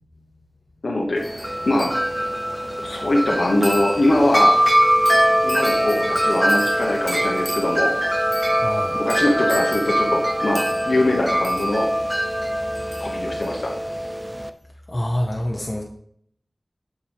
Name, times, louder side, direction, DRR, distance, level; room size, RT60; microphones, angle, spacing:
voice 1, 0.8-1.9 2.8-4.5 5.4-7.9 8.9-11.8 13.0-13.7, left 1 dB, 80° left, -1 dB, 1.1 m, -22 dB
Wind chime, 1.2-14.5, equal, 5° right, 0.5 m, -22 dB
voice 2, 8.6-9.0 14.9-15.8, left 1 dB, 35° left, 0 dB, 0.8 m, -26 dB
7.3 x 6.9 x 3.4 m, 0.67 s
wide cardioid pair, 55°, 0 cm